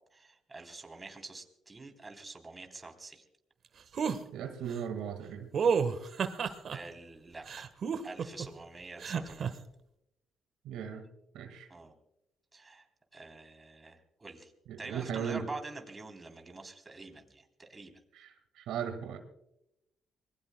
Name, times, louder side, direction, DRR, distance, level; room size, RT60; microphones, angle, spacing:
voice 1, 0.1-3.2 6.7-7.7 8.0-9.6 11.7-11.9 12.5-12.9 13.1-14.5 14.8-18.0, right 3 dB, 25° right, 4 dB, 3.4 m, -46 dB
sound 1, 3.9-4.2 5.5-6.8 7.5-8.5 9.0-9.5, right 6 dB, 55° right, 1.3 m, -30 dB
voice 2, 4.3-5.5 10.6-11.1 11.3-11.7 14.7-15.5 18.1-19.2, right 8 dB, 90° right, 6 dB, 1.7 m, -37 dB
26.0 x 21.5 x 2.2 m, 0.84 s
cardioid pair, 90°, 0 cm